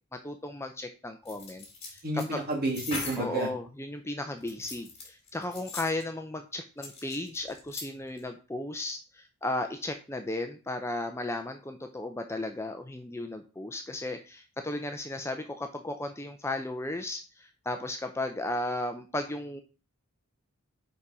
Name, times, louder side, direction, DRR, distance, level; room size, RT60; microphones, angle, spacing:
voice 1, 0.1-2.4 3.2-19.6, left 2 dB, 10° left, 6 dB, 0.5 m, -35 dB
sound 1, 1.2-3.3 4.4-6.0 6.8-7.9 8.2-8.3, left 3 dB, 30° left, 2.7 m, -40 dB
voice 2, 2.0-3.5, right 1 dB, 45° right, 1 dB, 2.1 m, -30 dB
5.2 x 5.2 x 4.8 m, 0.33 s
head